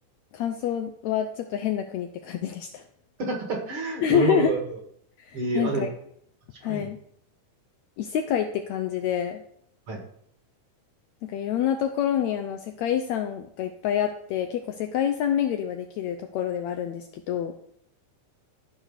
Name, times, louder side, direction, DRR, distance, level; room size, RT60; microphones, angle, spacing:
voice 1, 0.3-2.8 4.0-4.6 5.2-5.9 6.6-7.0 8.0-9.4 11.2-17.5, left 9 dB, 75° left, 7 dB, 1.7 m, -27 dB
voice 2, 3.2-4.8 5.3-5.9 6.7-6.9 9.9-10.0, right 3 dB, 45° right, 2 dB, 2.4 m, -28 dB
13.5 x 4.7 x 6.5 m, 0.68 s
omnidirectional pair, 3.7 m